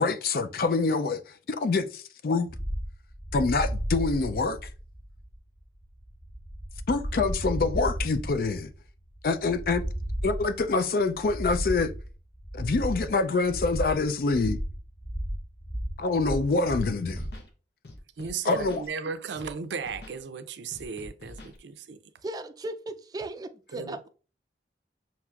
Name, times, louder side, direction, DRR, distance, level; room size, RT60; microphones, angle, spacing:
voice 1, 0.0-2.5 3.3-4.7 6.9-8.7 9.2-9.8 10.2-11.9 12.5-14.6 16.0-17.3 18.4-18.8, left 3 dB, 55° left, 0.4 m, -26 dB
sound 1, 2.5-17.4, equal, 5° left, 2.0 m, -34 dB
Scratching (performance technique), 16.7-16.8 17.1-17.5 17.8-18.9 19.4-19.5 19.8-20.2 20.7-21.6, left 1 dB, 75° left, 0.8 m, -46 dB
voice 2, 18.2-22.0 23.7-24.1, right 5 dB, 85° right, 0.5 m, -35 dB
voice 3, 22.2-24.1, right 2 dB, 20° right, 0.3 m, -37 dB
5.8 x 2.9 x 2.4 m
head